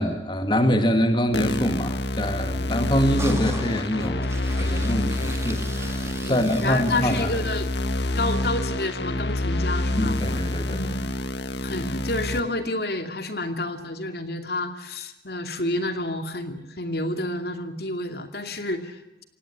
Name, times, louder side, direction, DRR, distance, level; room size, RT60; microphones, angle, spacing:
voice 1, 0.0-4.3 4.5-7.4 10.0-10.8, equal, 25° left, 7 dB, 2.2 m, -25 dB
sound 1, 1.3-12.4, left 1 dB, 75° left, 1.7 m, -27 dB
sound 2, 3.2-7.7, right 2 dB, 15° right, 1.8 m, -39 dB
voice 2, 6.2-7.7 8.1-10.2 10.6-11.0 11.6-19.2, left 2 dB, 60° left, 7 dB, 2.6 m, -29 dB
26.0 x 19.0 x 9.9 m, 0.94 s
head